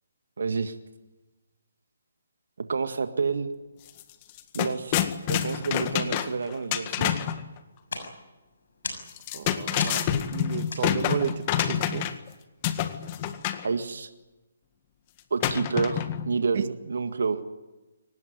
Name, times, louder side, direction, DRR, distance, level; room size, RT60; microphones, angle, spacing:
voice 1, 0.4-0.7 2.6-3.5 4.5-5.0 5.3-7.2 13.6-14.1 15.3-17.4, right 5 dB, 70° right, 9 dB, 1.9 m, -29 dB
drop little wood stuff, 3.9-4.0 4.3-7.4 9.1-12.3 12.6-13.7 15.4-16.3, left 11 dB, 30° left, 1.7 m, -27 dB
sound 1, 7.0-12.2, left 3 dB, 70° left, 6.7 m, -40 dB
voice 2, 9.3-12.1 16.5-16.6, right 8 dB, 50° right, 11 dB, 1.8 m, -32 dB
23.5 x 19.0 x 9.6 m, 1.1 s
figure-of-eight pair, 145°, 0 cm